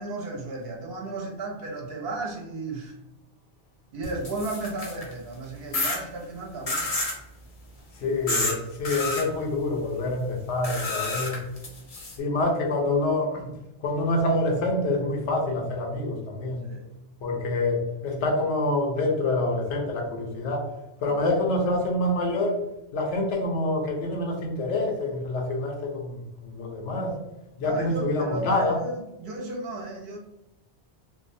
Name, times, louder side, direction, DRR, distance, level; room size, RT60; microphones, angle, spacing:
voice 1, 0.0-3.0 3.9-7.0 11.0-11.2 16.6-16.9 21.0-21.2 27.6-30.2, right 2 dB, 65° right, 0 dB, 0.8 m, -34 dB
sound 1, 4.0-5.1 5.7-6.0 6.7-7.2 8.3-8.5 8.8-9.2 10.6-12.2, left 2 dB, 50° left, 0.4 m, -29 dB
voice 2, 8.0-11.4 12.2-13.5 13.8-16.6 17.2-20.7 21.0-22.6 22.9-26.2 26.4-27.2 27.6-28.8, left 2 dB, 90° left, 1 dB, 0.9 m, -26 dB
2.6 x 2.0 x 2.5 m, 0.89 s
omnidirectional pair, 1.2 m